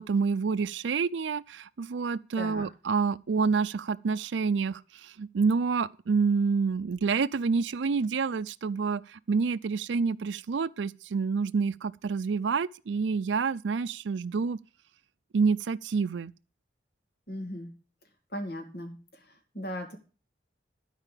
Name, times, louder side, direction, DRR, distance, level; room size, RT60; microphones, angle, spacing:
voice 1, 0.0-4.8 5.2-9.0 9.3-14.6 15.3-16.3, right 5 dB, 80° right, 0.5 m, -28 dB
voice 2, 2.4-2.7 17.3-17.7 18.3-19.0 19.5-20.0, equal, 55° left, 2.5 m, -37 dB
12.5 x 4.9 x 8.3 m
head